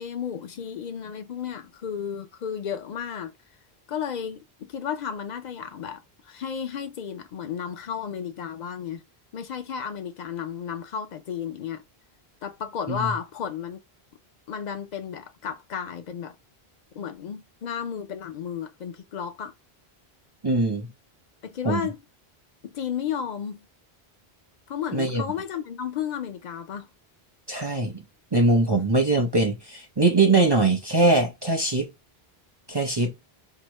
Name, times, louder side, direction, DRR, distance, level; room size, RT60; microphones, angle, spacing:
voice 1, 0.0-3.3 3.9-9.0 9.3-11.8 12.4-13.8 14.5-16.4 16.9-19.5 21.4-22.0 22.6-23.7 24.7-26.9, left 8 dB, 55° left, 0.6 m, -33 dB
voice 2, 20.4-20.9 21.6-21.8 24.9-25.2 27.5-28.0 28.3-31.9 32.7-33.1, right 2 dB, 30° right, 0.5 m, -22 dB
4.7 x 2.1 x 3.0 m
omnidirectional pair, 1.1 m